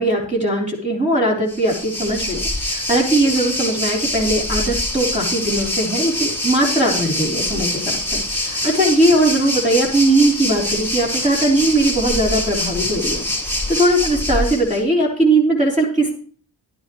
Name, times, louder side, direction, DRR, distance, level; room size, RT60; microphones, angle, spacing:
voice 1, 0.0-16.1, right 1 dB, 15° right, -2 dB, 4.1 m, -19 dB
Waves surf, 1.5-14.8, left 1 dB, 5° left, 4.9 m, -24 dB
11.5 x 10.0 x 3.2 m, 0.42 s
cardioid pair, 55°, 46 cm